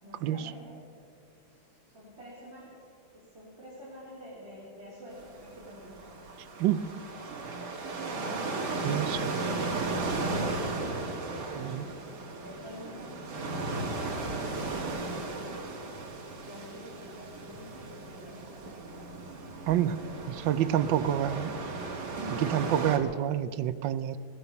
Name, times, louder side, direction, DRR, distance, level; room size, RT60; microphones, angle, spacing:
voice 1, 0.0-0.8 1.5-2.8 3.1-6.0 10.9-12.0 12.3-15.7 16.4-19.0 19.8-21.7, equal, 30° right, -9 dB, 4.0 m, -48 dB
sound 1, 5.1-23.0, right 3 dB, 55° right, 2.1 m, -35 dB
voice 2, 8.8-9.2 11.5-11.8 19.7-19.9 20.4-21.5 22.3-24.2, right 11 dB, 75° right, 14 dB, 1.2 m, -27 dB
18.5 x 10.5 x 7.0 m, 2.4 s
omnidirectional pair, 2.2 m